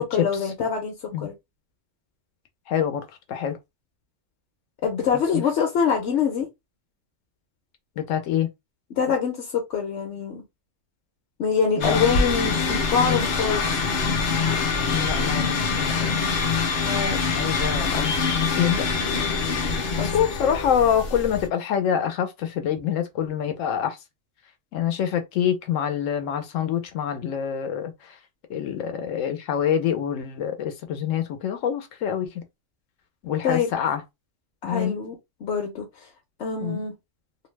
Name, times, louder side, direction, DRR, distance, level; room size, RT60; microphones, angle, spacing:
voice 1, 0.0-1.3 4.8-6.5 8.9-10.4 11.4-13.7 16.8-17.2 20.0-20.1 33.4-33.7 34.6-35.1 35.4-36.1 36.4-36.9, left 6 dB, 65° left, 1.0 m, -25 dB
voice 2, 2.7-3.0 3.3-3.6 8.0-8.5 11.8-12.0 14.9-16.2 17.3-18.9 20.0-24.0 24.7-27.9 28.5-32.3 33.2-34.0 34.6-35.0 36.6-36.8, left 9 dB, 90° left, 1.0 m, -26 dB
sound 1, 11.8-21.5, left 4 dB, 50° left, 0.6 m, -24 dB
2.7 x 2.1 x 3.1 m
omnidirectional pair, 1.3 m